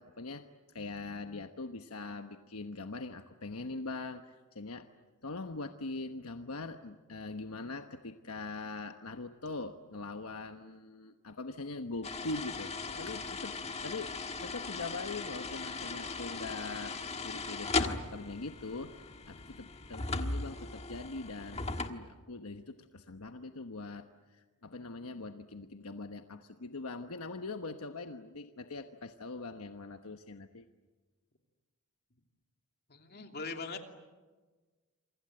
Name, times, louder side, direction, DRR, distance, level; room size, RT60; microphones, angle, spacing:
voice 1, 0.0-4.9 5.2-14.2 14.4-17.0 17.2-21.6 21.9-30.7, left 3 dB, 75° left, 7 dB, 1.1 m, -42 dB
sound 1, 12.0-21.9, left 3 dB, 30° left, 1.5 m, -38 dB
voice 2, 32.9-33.9, left 4 dB, 50° left, 4 dB, 2.8 m, -41 dB
28.5 x 25.0 x 7.8 m, 1.3 s
head